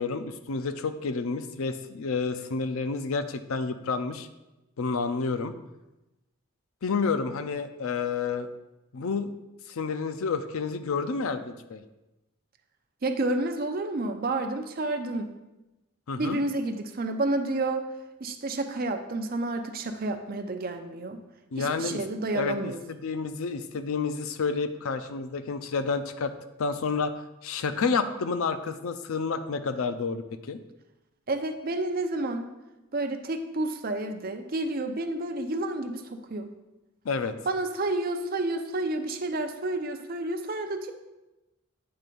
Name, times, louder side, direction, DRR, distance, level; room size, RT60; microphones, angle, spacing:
voice 1, 0.0-4.3 4.8-5.5 6.8-8.5 8.9-9.3 9.7-11.8 16.1-16.4 21.5-22.0 22.3-26.3 26.6-30.6 37.0-37.4, left 4 dB, 70° left, 10 dB, 0.5 m, -30 dB
voice 2, 13.0-15.3 16.2-17.8 18.2-21.2 21.6-22.8 31.3-32.5 32.9-36.5 37.5-40.9, right 2 dB, 40° right, 6 dB, 0.6 m, -30 dB
8.7 x 3.3 x 5.3 m, 1.0 s
head